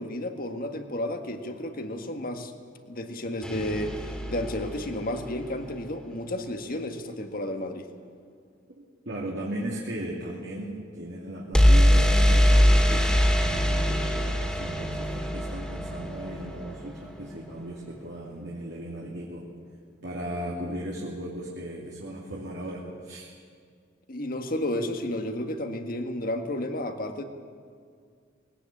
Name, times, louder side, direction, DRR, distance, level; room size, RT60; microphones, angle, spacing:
voice 1, 0.0-2.5 2.9-7.9 24.1-27.2, left 1 dB, 50° left, 6 dB, 1.7 m, -32 dB
sound 1, 3.4-5.4 11.5-17.3, equal, 5° left, 2.5 m, -23 dB
voice 2, 9.1-19.4 20.0-23.3, right 1 dB, 65° right, -3 dB, 2.7 m, -36 dB
20.0 x 18.0 x 8.5 m, 2.2 s
head